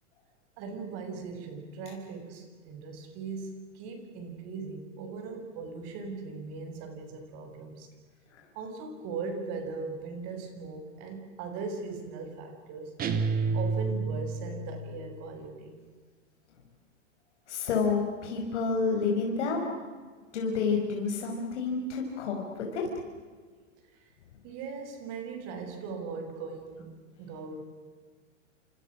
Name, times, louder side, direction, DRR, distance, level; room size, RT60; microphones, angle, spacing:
voice 1, 0.6-7.9 8.5-13.0 13.5-15.8 23.9-24.1 24.4-27.6, right 4 dB, 40° right, 6 dB, 6.8 m, -39 dB
sound 1, 13.0-14.7, right 4 dB, 25° right, 2.4 m, -29 dB
voice 2, 17.5-19.6 20.3-22.9, left 4 dB, 65° left, 1 dB, 5.4 m, -29 dB
29.5 x 28.0 x 6.3 m, 1.5 s
hypercardioid pair, 125°, 37 cm